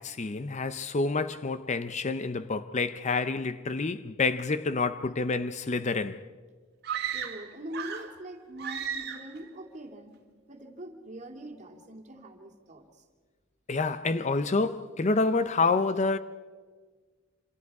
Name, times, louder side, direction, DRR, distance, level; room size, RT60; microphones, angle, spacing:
voice 1, 0.0-6.2 13.7-16.2, left 3 dB, 35° left, 0.6 m, -28 dB
sound 1, 6.8-8.2 8.6-9.4, right 8 dB, 50° right, 1.9 m, -35 dB
voice 2, 7.0-10.2 10.5-12.9, right 1 dB, 35° right, 2.5 m, -43 dB
27.0 x 27.0 x 4.8 m
head